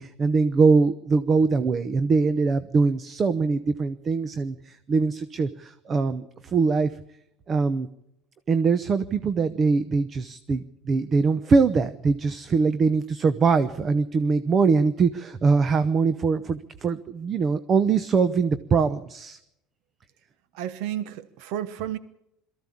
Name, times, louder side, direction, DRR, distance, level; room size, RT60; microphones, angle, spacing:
voice 1, 0.0-6.9 7.5-7.9 8.5-19.4, right 4 dB, 25° right, 0.8 m, -22 dB
voice 2, 20.5-22.0, right 11 dB, 75° right, 1.1 m, -32 dB
22.5 x 14.5 x 8.6 m
cardioid pair, 160°, 0 cm